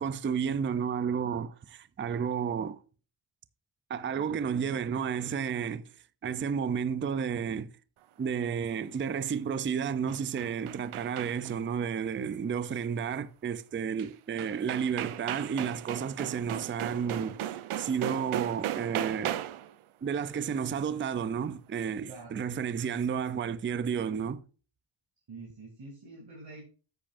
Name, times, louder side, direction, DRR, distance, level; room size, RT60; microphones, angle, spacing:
voice 1, 0.0-2.8 3.9-5.8 6.2-7.7 8.2-19.4 20.0-24.4, right 7 dB, 25° right, 0.4 m, -32 dB
sound 1, 9.9-11.6 14.0-14.1 14.4-19.7, right 12 dB, 80° right, 0.7 m, -36 dB
voice 2, 22.1-22.5 25.3-26.7, right 3 dB, 55° right, 2.8 m, -46 dB
10.0 x 8.7 x 2.5 m
wide cardioid pair, 175°, 49 cm